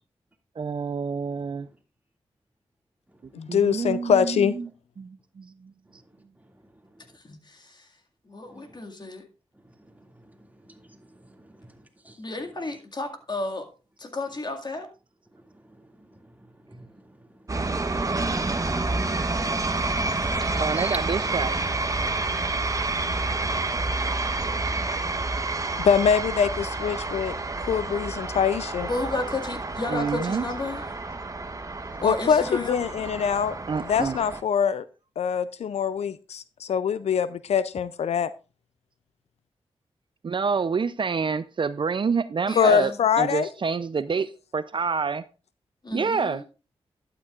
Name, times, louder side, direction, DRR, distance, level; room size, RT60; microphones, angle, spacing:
voice 1, 0.6-1.7 3.5-4.7 5.0-5.7 20.6-21.6 29.9-30.5 33.7-34.2 40.2-42.9 43.2-45.2 45.9-46.4, right 5 dB, 50° right, 0.5 m, -27 dB
voice 2, 3.3-4.5 25.8-27.4 27.6-28.9 32.0-33.5 33.9-34.8 35.2-38.3 42.6-43.5, left 7 dB, 75° left, 0.4 m, -23 dB
voice 3, 7.2-7.7 8.3-9.2 12.2-13.7 14.0-14.9 28.9-30.8 32.0-32.8 42.5-43.0 45.8-46.4, left 2 dB, 40° left, 2.0 m, -32 dB
voice 4, 10.7-12.2 16.1-16.2 16.7-17.0 17.9-18.0 19.5-21.0, right 1 dB, 15° right, 2.2 m, -44 dB
sound 1, 17.5-34.4, right 3 dB, 30° right, 1.0 m, -29 dB
12.0 x 9.0 x 2.4 m
cardioid pair, 50°, 11 cm